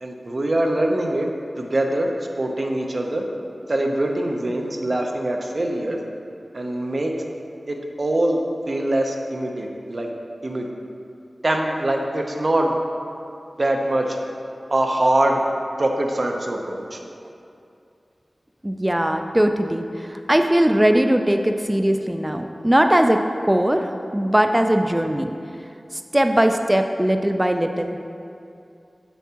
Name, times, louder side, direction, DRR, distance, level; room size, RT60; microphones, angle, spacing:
voice 1, 0.0-1.3 1.6-2.1 2.4-3.2 3.7-6.0 6.5-7.1 7.7-8.4 8.7-10.1 10.4-10.7 11.4-12.8 13.6-14.2 14.7-15.4 15.8-17.0, right 1 dB, 50° right, 2 dB, 0.7 m, -23 dB
voice 2, 18.6-25.3 25.9-28.0, right 1 dB, 15° right, 5 dB, 0.3 m, -20 dB
7.2 x 7.0 x 2.9 m, 2.6 s
wide cardioid pair, 60°, 0 cm